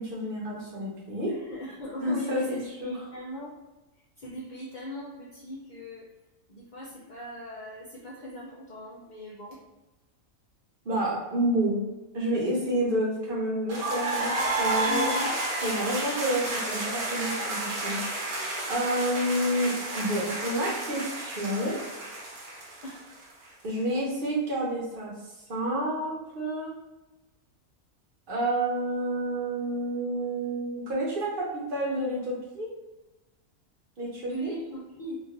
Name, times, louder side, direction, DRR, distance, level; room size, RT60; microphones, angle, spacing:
voice 1, 0.0-1.4 2.0-3.1 10.8-11.8 12.1-15.1 15.6-18.3 18.7-21.8 23.6-25.1 25.5-26.7 28.3-32.7 34.0-34.5, right 1 dB, 45° right, -4 dB, 0.9 m, -29 dB
voice 2, 1.3-3.5 4.2-6.1 6.5-9.6 14.9-15.3 22.8-23.0 34.2-35.2, left 1 dB, 75° left, -6 dB, 0.4 m, -39 dB
sound 1, 13.7-23.5, right 2 dB, 90° right, 1.2 m, -31 dB
3.0 x 2.5 x 2.5 m, 1.1 s
omnidirectional pair, 1.5 m